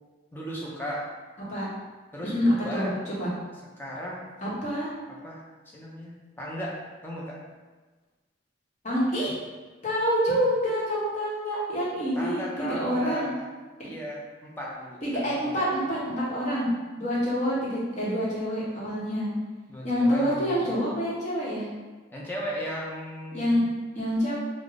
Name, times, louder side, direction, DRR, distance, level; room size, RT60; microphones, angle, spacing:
voice 1, 0.3-1.1 2.1-3.0 3.8-4.2 5.1-7.5 12.2-13.4 13.8-15.7 19.7-20.8 22.1-23.6, equal, 10° left, -4 dB, 0.5 m, -36 dB
voice 2, 2.3-3.3 4.4-4.9 8.8-9.3 9.8-13.3 15.0-16.7 17.0-19.3 19.8-21.7 23.3-23.6 24.0-24.3, equal, 35° left, -7 dB, 0.9 m, -27 dB
3.5 x 2.0 x 3.5 m, 1.3 s
head